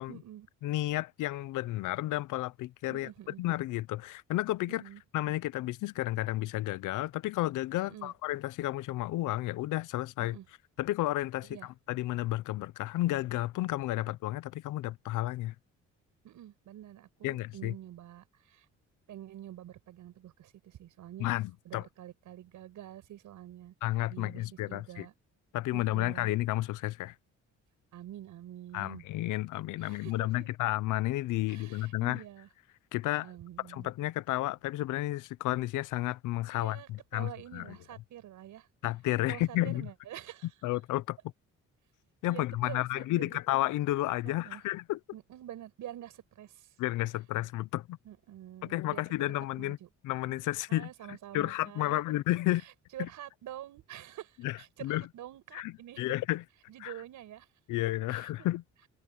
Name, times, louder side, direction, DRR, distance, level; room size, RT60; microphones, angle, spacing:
voice 1, 0.1-0.5 2.9-3.4 4.7-5.0 7.9-8.1 10.2-10.5 11.4-11.7 16.2-18.7 19.1-21.3 21.6-23.7 24.1-25.1 25.7-26.3 27.9-29.0 29.8-30.5 31.5-32.5 33.2-33.9 36.6-38.7 39.3-40.5 42.3-43.4 44.2-44.6 45.1-46.7 48.0-49.0 49.6-49.9 50.7-52.0 52.9-56.0 56.7-57.5 58.1-58.5, right 12 dB, 80° right, 6.3 m, -47 dB
voice 2, 0.6-3.1 3.4-4.8 5.1-10.4 10.8-15.5 17.2-17.7 21.2-21.9 23.8-25.1 25.5-27.1 28.7-32.2 32.9-33.3 33.6-37.8 38.8-39.9 40.6-41.2 42.2-45.0 46.8-48.0 48.6-49.8 50.0-52.6 53.0-53.1 54.4-55.1 55.5-56.4 56.8-56.9 57.7-58.6, left 16 dB, 90° left, 0.8 m, -32 dB
cardioid pair, 90°, 30 cm